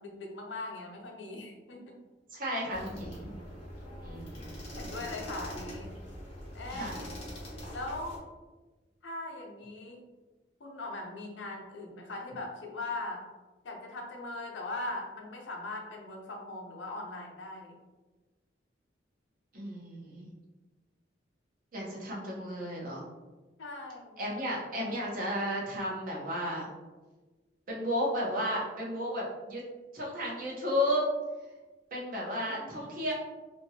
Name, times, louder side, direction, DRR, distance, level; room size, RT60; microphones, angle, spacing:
voice 1, 0.0-2.0 3.8-4.2 4.8-5.9 6.5-7.0 7.7-8.2 9.0-10.0 10.6-13.2 13.6-17.7 23.6-24.1 32.5-32.8, left 2 dB, 90° left, 0 dB, 0.6 m, -40 dB
voice 2, 2.3-3.3 4.0-4.5 6.7-7.0 19.5-20.3 21.7-23.0 24.2-26.7 27.7-29.6 29.9-31.1 31.9-33.1, equal, 50° right, -4 dB, 0.8 m, -33 dB
sound 1, 2.7-8.2, equal, 35° left, 0.9 m, -43 dB
2.9 x 2.6 x 2.7 m, 1.2 s
head